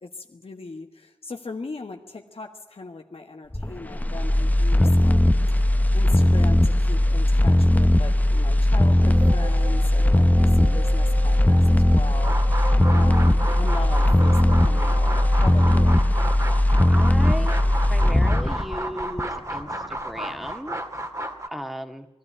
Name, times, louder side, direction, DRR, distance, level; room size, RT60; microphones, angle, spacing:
voice 1, 0.0-5.3 5.9-10.3 10.6-12.4 12.9-16.0, left 3 dB, 85° left, 3 dB, 1.5 m, -38 dB
sound 1, 3.5-19.6 20.0-20.1, left 1 dB, 15° left, 0.8 m, -19 dB
sound 2, 9.0-15.9, right 2 dB, 55° right, 0.9 m, -38 dB
voice 2, 10.4-10.8 16.9-20.8 21.5-22.1, equal, ahead, 6 dB, 1.8 m, -36 dB
sound 3, 12.1-21.5, right 1 dB, 35° right, 2.2 m, -32 dB
20.5 x 13.0 x 9.9 m, 1.0 s
wide cardioid pair, 55°, 10 cm